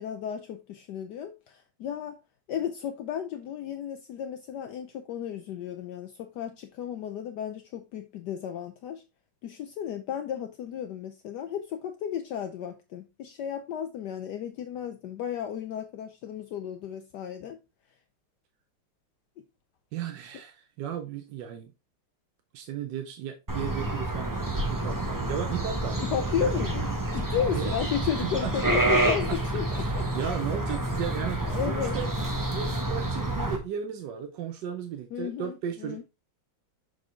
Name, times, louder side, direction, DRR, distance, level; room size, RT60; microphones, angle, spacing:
voice 1, 0.0-2.2 2.5-9.0 9.4-17.6 26.0-30.1 31.4-32.0 35.1-36.0, left 9 dB, 70° left, 1.2 m, -34 dB
voice 2, 19.9-21.7 22.5-26.5 26.8-27.0 27.4-27.7 28.2-28.7 29.1-29.4 29.7-32.1 32.5-36.0, right 9 dB, 70° right, 1.3 m, -35 dB
sound 1, 23.5-33.6, right 1 dB, 20° right, 0.6 m, -28 dB
6.2 x 5.0 x 3.6 m
omnidirectional pair, 2.0 m